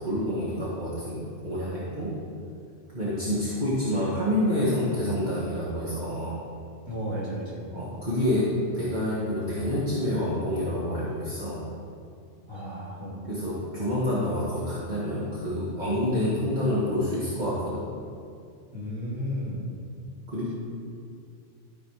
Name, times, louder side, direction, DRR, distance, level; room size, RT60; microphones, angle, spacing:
voice 1, 0.0-2.1 2.9-6.4 7.7-11.6 13.3-17.8 20.3-20.5, left 1 dB, 40° right, -9 dB, 1.7 m, -28 dB
voice 2, 6.9-7.9 12.5-13.2 16.1-16.3 18.7-19.6, equal, 20° right, -7 dB, 2.5 m, -34 dB
13.5 x 4.7 x 4.9 m, 2.3 s
omnidirectional pair, 1.2 m